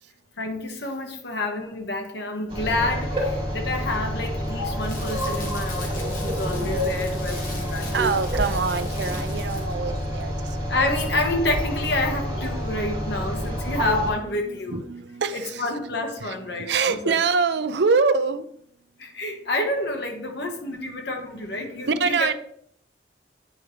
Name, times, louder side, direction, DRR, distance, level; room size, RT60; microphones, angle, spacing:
voice 1, 0.4-8.2 10.7-14.8 15.3-17.1 19.0-22.3, left 2 dB, 70° left, 3 dB, 1.4 m, -29 dB
sound 1, 2.5-14.1, equal, 30° right, 2.3 m, -28 dB
Crackle, 4.5-9.9 10.2-10.4, left 2 dB, 50° left, 1.9 m, -39 dB
voice 2, 7.3-10.6 14.0-14.1 14.4-15.9 16.2-18.5 21.2-22.3, right 5 dB, 70° right, 12 dB, 0.5 m, -25 dB
9.5 x 4.7 x 3.2 m, 0.67 s
head